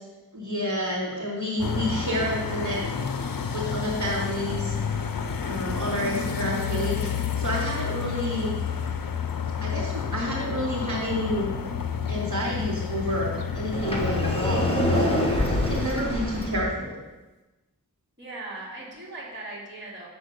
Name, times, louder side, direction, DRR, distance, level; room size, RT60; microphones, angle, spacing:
voice 1, 0.3-2.8 3.5-5.1 5.4-8.5 9.6-11.4 12.1-17.0, equal, 55° right, -5 dB, 3.0 m, -29 dB
sound 1, 1.6-15.9, left 6 dB, 70° left, 0.6 m, -30 dB
Sliding door, 13.7-16.7, equal, 15° left, 1.5 m, -26 dB
voice 2, 18.2-20.1, right 2 dB, 30° right, -6 dB, 3.0 m, -39 dB
7.6 x 4.4 x 6.6 m, 1.1 s
wide cardioid pair, 50°, 35 cm